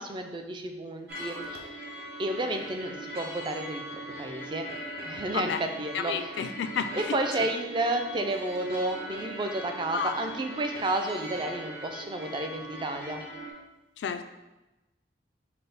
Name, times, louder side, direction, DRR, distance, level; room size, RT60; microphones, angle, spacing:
voice 1, 0.0-1.7 2.2-4.7 5.0-6.3 6.9-13.2, right 2 dB, 25° right, 5 dB, 0.3 m, -31 dB
sound 1, 1.1-13.5, right 1 dB, 60° right, 0.6 m, -40 dB
voice 2, 5.9-7.2 9.9-10.1 14.0-14.3, left 6 dB, 80° left, 9 dB, 0.3 m, -31 dB
5.5 x 2.0 x 3.9 m, 1.0 s
head